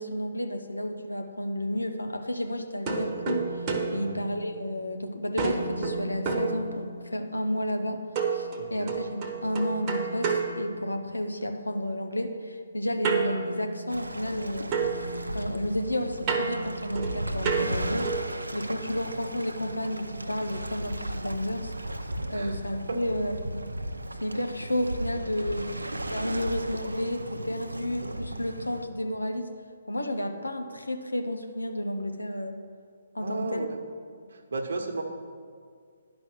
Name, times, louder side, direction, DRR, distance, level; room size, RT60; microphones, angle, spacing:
voice 1, 0.0-3.6 3.9-8.0 8.3-14.7 15.3-18.1 18.5-21.7 22.3-23.6 24.2-25.7 26.1-29.5 29.9-32.6 33.1-33.7, left 1 dB, 85° left, 6 dB, 0.9 m, -31 dB
sound 1, 2.9-5.0 5.4-7.2 8.2-11.4 13.0-14.4 14.7-18.4, right 5 dB, 25° right, 1.1 m, -31 dB
voice 2, 8.6-8.9 22.3-22.6 22.9-23.0 33.2-33.7 34.5-35.0, right 3 dB, 60° right, 4 dB, 1.1 m, -33 dB
Waves surf, 13.9-28.9, right 1 dB, 85° right, 0.6 m, -36 dB
10.5 x 5.3 x 6.0 m, 2.1 s
figure-of-eight pair, 135°, 0 cm